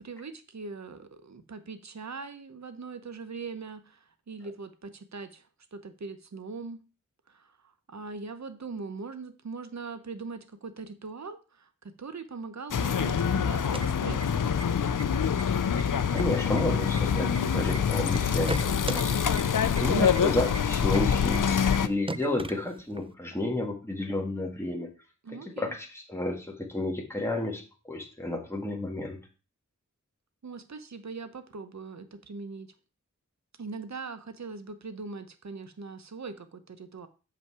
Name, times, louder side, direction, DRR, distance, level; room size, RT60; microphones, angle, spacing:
voice 1, 0.0-6.8 7.3-14.5 25.2-25.8 30.4-32.7 33.6-37.1, right 4 dB, 60° right, 10 dB, 0.8 m, -41 dB
sound 1, 12.7-21.9, left 7 dB, 85° left, 0.5 m, -25 dB
sound 2, 13.6-14.6 15.0-15.1 15.4-15.8 16.2-17.8 18.1-19.0 19.4-19.5 19.8-19.9 20.1-20.2 20.5-20.6 20.9-21.0 21.3-21.4 21.7-21.8 22.1-23.1, right 2 dB, 15° right, 0.5 m, -37 dB
voice 2, 16.1-24.9 25.3-29.2, left 1 dB, 10° left, 1 dB, 1.7 m, -32 dB
7.3 x 5.5 x 4.7 m, 0.34 s
wide cardioid pair, 55°, 31 cm